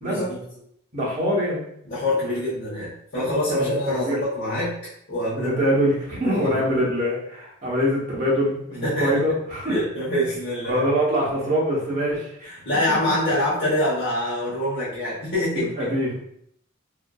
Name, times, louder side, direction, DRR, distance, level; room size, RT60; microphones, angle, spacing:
voice 1, 0.0-0.4 1.8-4.8 5.1-5.5 6.2-6.6 8.8-9.1 9.7-10.8 12.6-15.9, left 1 dB, 60° left, -12 dB, 1.0 m, -25 dB
voice 2, 0.9-1.6 3.1-4.2 5.3-9.8 10.6-12.5 15.5-16.2, equal, 40° right, -5 dB, 0.9 m, -24 dB
2.6 x 2.4 x 2.3 m, 0.72 s
head